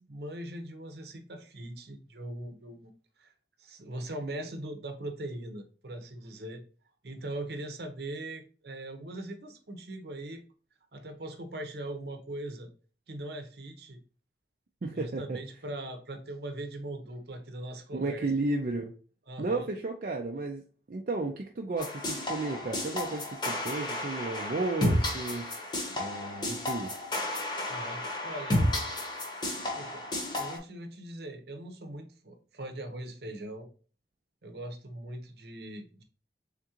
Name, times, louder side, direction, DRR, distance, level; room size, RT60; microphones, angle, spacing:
voice 1, 0.0-2.9 3.2-3.3 3.6-6.6 7.0-10.4 10.9-12.7 13.1-14.0 14.9-18.3 19.3-19.7 27.7-28.6 29.7-30.1 30.3-33.7 34.4-36.0, right 1 dB, 65° right, 6 dB, 0.8 m, -40 dB
voice 2, 14.8-15.4 17.9-18.9 19.4-20.6 20.9-25.5 26.0-26.9, right 3 dB, 50° right, 1 dB, 0.4 m, -33 dB
sound 1, 21.8-30.6, left 1 dB, 25° left, 0.9 m, -32 dB
3.6 x 3.6 x 2.9 m, 0.38 s
head